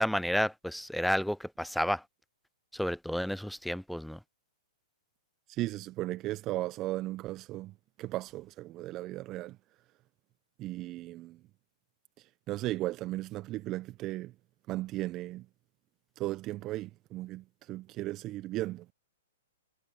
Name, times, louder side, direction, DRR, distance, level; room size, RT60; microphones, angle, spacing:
voice 1, 0.0-2.0 2.7-4.2, equal, ahead, 0.5 m, -31 dB
voice 2, 5.5-9.6 10.6-11.4 12.2-14.3 14.7-15.5 16.2-18.9, right 17 dB, 30° right, 0.9 m, -36 dB
figure-of-eight pair, 115°, 0 cm